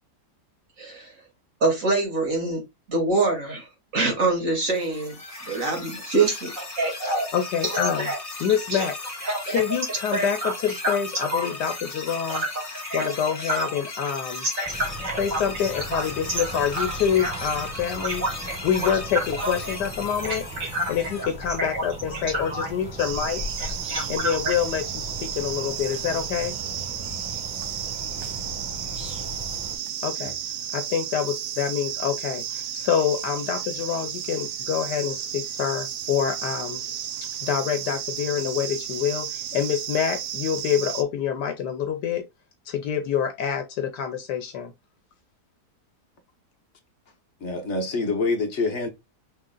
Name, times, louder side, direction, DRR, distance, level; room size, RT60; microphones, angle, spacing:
voice 1, 0.8-1.1 1.6-2.6 2.9-3.7 3.9-5.2 5.5-7.3 7.6-8.2 8.7-8.9 9.2-9.6 9.9-10.5 10.8-11.5 12.3-12.5 12.8-13.1 13.5-13.7 14.4-15.4 15.7-17.4 18.0-19.8 20.2-20.9 21.2-21.3 21.6-21.9 22.1-22.7 23.6-24.6, right 2 dB, 50° right, 2.5 m, -27 dB
sound 1, 4.6-21.2, left 3 dB, 20° left, 1.5 m, -37 dB
voice 2, 7.0-8.1 8.4-8.9 9.5-12.4 12.9-14.5 15.2-18.2 18.6-20.4 20.9-23.4 24.1-26.6 30.0-30.4 30.7-36.8 37.4-42.2 42.7-44.7, left 8 dB, 75° left, 1.4 m, -26 dB
sound 2, 14.6-29.8, equal, 5° right, 0.9 m, -38 dB
sound 3, 23.0-41.0, right 9 dB, 65° right, 1.1 m, -33 dB
voice 3, 47.4-48.9, left 3 dB, 50° left, 1.2 m, -26 dB
5.5 x 3.7 x 2.2 m
omnidirectional pair, 1.8 m